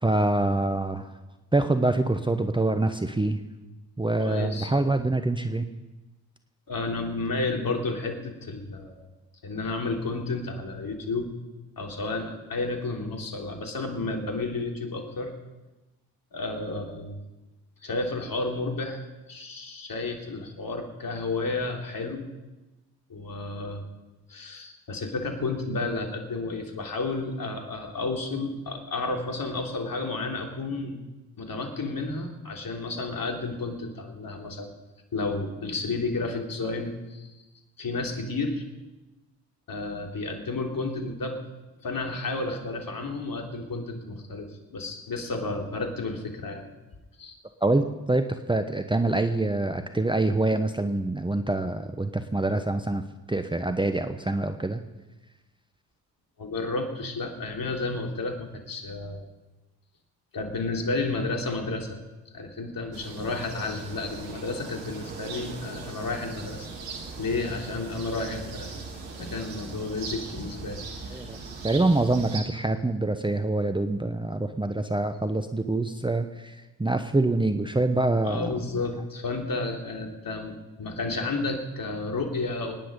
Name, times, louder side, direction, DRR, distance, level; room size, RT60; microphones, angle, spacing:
voice 1, 0.0-1.1 1.5-3.4 4.0-5.6 47.6-53.0 53.3-54.8 71.1-71.4 71.6-78.6, right 2 dB, 10° right, 8 dB, 1.0 m, -25 dB
voice 2, 4.2-4.7 6.7-9.1 9.4-11.3 11.8-15.3 16.3-17.2 17.8-22.3 23.1-23.8 24.3-31.0 31.4-34.7 35.1-37.3 37.8-38.6 39.7-41.4 41.8-46.7 47.2-47.4 56.4-59.2 60.3-62.0 62.3-66.7 67.2-68.8 69.2-70.8 71.1-71.2 78.2-82.8, left 3 dB, 45° left, 2 dB, 3.4 m, -31 dB
sound 1, 62.9-72.4, right 4 dB, 80° right, 2.2 m, -39 dB
24.5 x 10.5 x 5.4 m, 1.1 s
hypercardioid pair, 45°, 48 cm